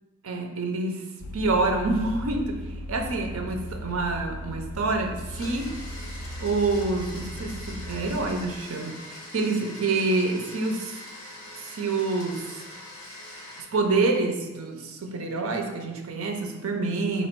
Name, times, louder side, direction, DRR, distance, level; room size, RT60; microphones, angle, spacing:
voice 1, 0.2-1.0 1.3-2.6 2.9-5.8 6.4-11.0 11.6-12.6 13.7-17.3, right 3 dB, 65° right, 4 dB, 0.5 m, -27 dB
Vehicle, 1.2-8.6, equal, 85° left, 0.4 m, -37 dB
Domestic sounds home sounds, 5.2-13.6, left 1 dB, 55° left, 1.2 m, -43 dB
3.4 x 3.0 x 4.4 m, 1.2 s
head